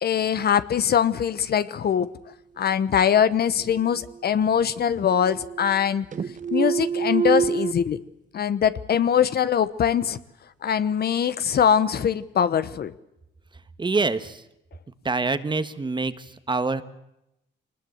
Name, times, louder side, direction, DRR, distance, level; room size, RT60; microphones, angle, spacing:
voice 1, 0.0-2.1 2.6-6.1 6.5-8.0 8.3-10.2 10.6-12.9, left 8 dB, 55° left, 15 dB, 1.0 m, -22 dB
sound 1, 3.6-4.6 4.9-5.9 6.1-7.7, right 7 dB, 40° right, 0.9 m, -27 dB
voice 2, 13.8-14.4 15.0-16.8, right 3 dB, 25° right, 12 dB, 1.4 m, -25 dB
23.5 x 20.0 x 8.0 m, 0.86 s
cardioid pair, 90°, 20 cm